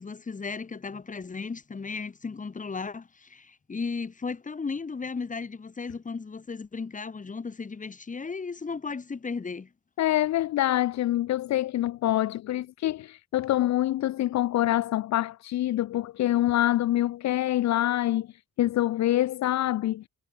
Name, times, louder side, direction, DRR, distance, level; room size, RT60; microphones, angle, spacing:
voice 1, 0.0-9.7, left 4 dB, 25° left, 1.7 m, -35 dB
voice 2, 10.0-18.3 18.6-20.0, left 14 dB, 65° left, 0.7 m, -25 dB
cardioid pair, 90°, 30 cm